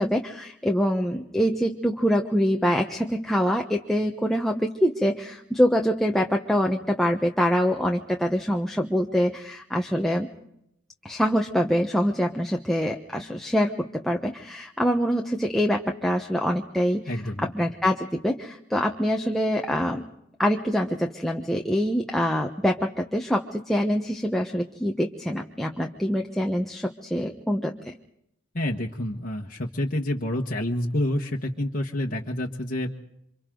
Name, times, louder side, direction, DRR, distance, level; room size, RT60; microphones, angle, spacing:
voice 1, 0.0-10.3 11.0-20.0 20.4-27.9, equal, ahead, 1 dB, 1.1 m, -25 dB
voice 2, 17.1-17.7 28.5-33.0, left 1 dB, 40° left, -1 dB, 1.5 m, -28 dB
28.5 x 26.0 x 3.9 m, 0.78 s
head